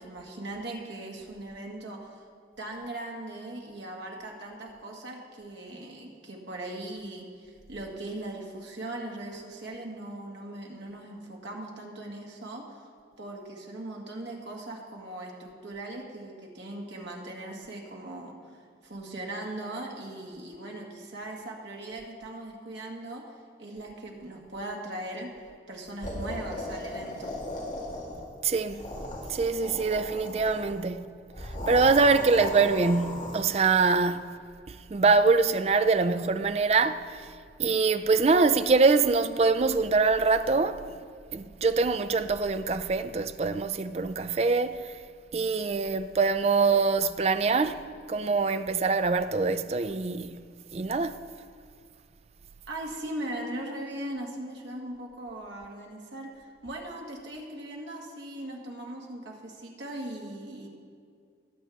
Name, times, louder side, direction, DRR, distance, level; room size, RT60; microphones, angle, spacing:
voice 1, 0.0-2.2 2.6-12.9 13.2-18.3 18.8-23.2 23.6-25.3 25.7-27.3 52.7-60.7, right 1 dB, 80° right, 1.9 m, -39 dB
sound 1, 26.0-28.3 28.6-30.8 31.3-33.6, left 1 dB, 40° left, 1.9 m, -37 dB
voice 2, 28.4-28.9 29.3-31.0 31.4-34.3 34.7-37.3 37.6-40.8 41.3-45.0 45.3-50.4 50.7-51.2, right 4 dB, 35° right, 0.3 m, -24 dB
19.0 x 7.3 x 3.6 m
head